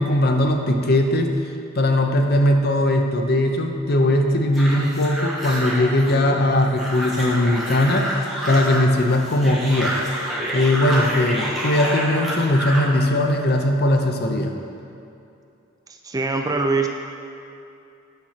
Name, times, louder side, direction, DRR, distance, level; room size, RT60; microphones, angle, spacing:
voice 1, 0.0-1.3 1.7-8.1 8.5-9.9 10.5-14.5, left 1 dB, 50° left, 4 dB, 0.6 m, -19 dB
sound 1, 4.5-12.9, right 1 dB, ahead, 1.2 m, -28 dB
voice 2, 16.0-16.9, right 3 dB, 15° right, 3 dB, 0.3 m, -22 dB
8.9 x 4.3 x 5.8 m, 2.6 s
head